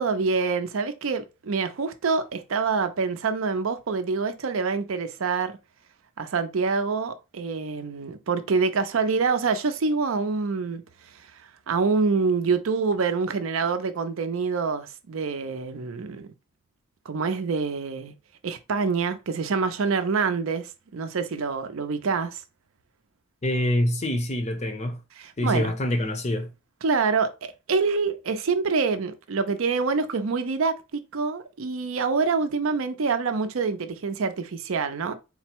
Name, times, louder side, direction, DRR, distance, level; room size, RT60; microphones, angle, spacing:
voice 1, 0.0-5.5 6.2-10.8 11.7-16.3 17.1-18.1 18.4-22.4 25.2-25.7 26.8-35.1, right 4 dB, 65° right, 0.5 m, -26 dB
voice 2, 23.4-25.0 25.4-26.5, left 1 dB, 30° left, 0.6 m, -25 dB
3.9 x 2.0 x 4.4 m
head